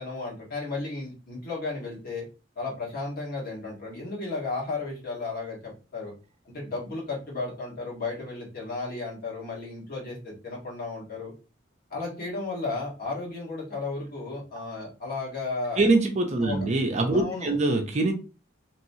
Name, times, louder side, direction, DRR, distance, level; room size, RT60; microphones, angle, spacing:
voice 1, 0.0-2.3 2.5-6.1 6.4-11.3 11.9-15.9 16.4-16.6 17.1-17.6, left 3 dB, 50° left, -4 dB, 1.5 m, -34 dB
voice 2, 15.8-18.1, right 2 dB, 35° right, 4 dB, 0.5 m, -23 dB
3.0 x 2.9 x 2.7 m, 0.33 s
head